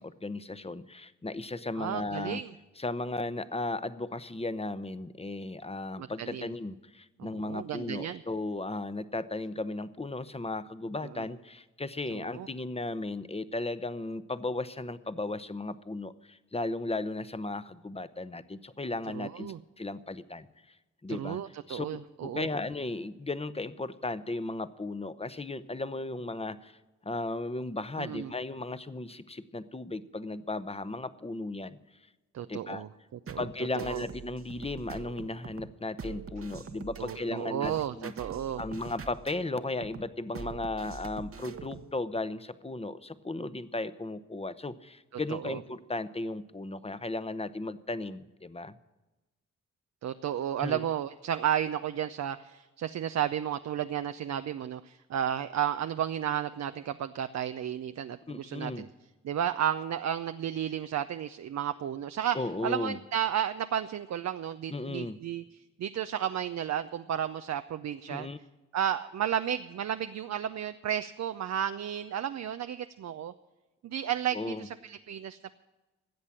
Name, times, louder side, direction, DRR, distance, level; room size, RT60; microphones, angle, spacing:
voice 1, 0.0-2.4 2.8-20.7 21.0-21.4 21.7-21.9 22.2-26.8 27.0-31.8 32.5-32.8 33.4-38.1 38.6-48.8 50.6-50.8 58.3-58.9 62.3-63.0 64.7-65.2 68.1-68.4 74.3-74.7, left 2 dB, 20° left, 14 dB, 0.9 m, -35 dB
voice 2, 1.8-2.5 6.0-6.5 7.2-8.2 11.2-11.3 12.1-12.5 19.1-19.6 21.1-22.5 28.0-28.3 32.3-33.4 33.8-34.0 37.0-38.6 45.3-45.6 50.0-58.9 59.2-62.4 62.6-65.4 65.8-68.3 68.7-73.3 73.8-75.5, right 10 dB, 65° right, 10 dB, 0.6 m, -33 dB
sound 1, 33.3-41.9, right 6 dB, 45° right, 1.0 m, -44 dB
13.0 x 8.1 x 8.7 m, 1.1 s
supercardioid pair, 40°, 30 cm